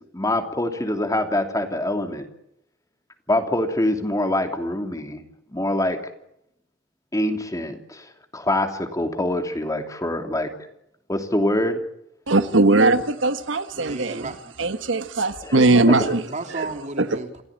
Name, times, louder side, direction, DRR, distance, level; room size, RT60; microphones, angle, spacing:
voice 1, 0.1-2.3 3.3-5.2 5.5-6.0 7.1-10.5 11.1-11.8 15.4-15.6 15.9-16.1, left 1 dB, 20° left, 2.9 m, -24 dB
voice 2, 12.3-14.3 14.6-16.2 16.6-16.7 17.0-17.1, right 2 dB, 90° right, 1.3 m, -19 dB
voice 3, 13.8-14.5 16.2-17.4, right 2 dB, 40° right, 3.2 m, -33 dB
29.0 x 16.0 x 8.7 m
head